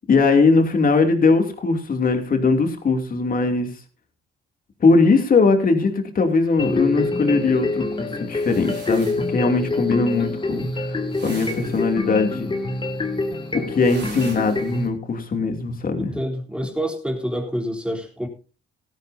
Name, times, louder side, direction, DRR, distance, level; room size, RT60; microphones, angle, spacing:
voice 1, 0.1-3.7 4.8-10.9 11.2-12.5 13.5-16.1, left 4 dB, 45° left, 5 dB, 2.9 m, -20 dB
sound 1, 6.6-14.9, left 2 dB, 25° left, 2.4 m, -26 dB
sound 2, 8.4-9.3 11.1-11.9 13.8-14.8, right 5 dB, 65° right, 4.8 m, -42 dB
voice 2, 16.0-18.3, equal, 5° right, 2 dB, 3.7 m, -27 dB
17.0 x 13.5 x 2.8 m, 0.35 s
cardioid pair, 90°, 20 cm